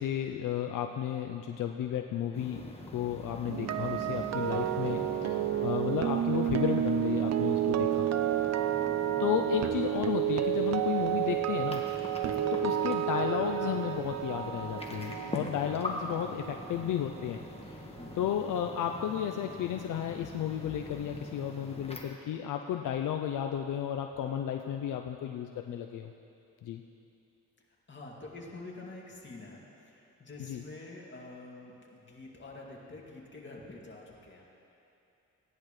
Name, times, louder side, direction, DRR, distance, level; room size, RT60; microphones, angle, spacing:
voice 1, 0.0-2.6 2.9-8.1 9.2-11.8 12.5-17.8 18.2-26.1 26.6-26.8 30.4-30.6, left 9 dB, 80° left, 5 dB, 0.5 m, -33 dB
sound 1, 2.3-22.0, left 2 dB, 20° left, 1.4 m, -44 dB
sound 2, 3.5-17.5 17.8-18.1, right 11 dB, 55° right, 0.5 m, -31 dB
voice 2, 18.0-18.3 27.9-34.4, left 2 dB, 35° left, -3 dB, 2.4 m, -47 dB
17.0 x 10.5 x 3.2 m, 2.8 s
cardioid pair, 65°, 31 cm